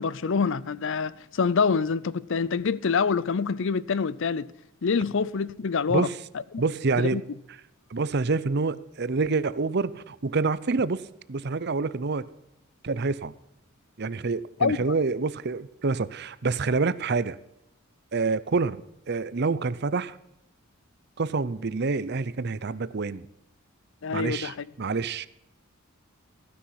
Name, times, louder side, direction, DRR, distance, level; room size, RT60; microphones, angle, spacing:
voice 1, 0.0-4.5 4.8-6.1 6.5-6.6 7.0-7.2 14.6-14.8 24.0-24.7, left 5 dB, 60° left, 0.5 m, -26 dB
voice 2, 6.6-7.2 7.9-11.0 11.3-12.3 12.8-13.3 14.0-17.4 18.1-20.2 21.2-23.3 24.1-25.3, right 4 dB, 50° right, 0.6 m, -27 dB
15.5 x 10.0 x 5.7 m
head